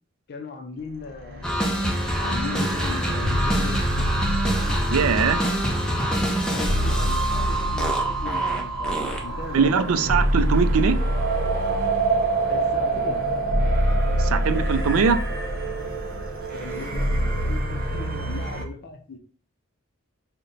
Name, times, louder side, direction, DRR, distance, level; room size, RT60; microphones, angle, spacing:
voice 1, 0.3-1.8 2.2-3.8 6.5-10.2 12.5-13.2 16.5-19.2, left 3 dB, 50° left, 0.5 m, -37 dB
sound 1, 1.0-18.6, right 1 dB, 45° right, 0.8 m, -25 dB
sound 2, 1.4-9.5, equal, 5° left, 0.6 m, -26 dB
voice 2, 4.9-5.4 9.5-11.0 14.2-15.2, right 5 dB, 90° right, 0.4 m, -21 dB
3.9 x 2.2 x 3.9 m
head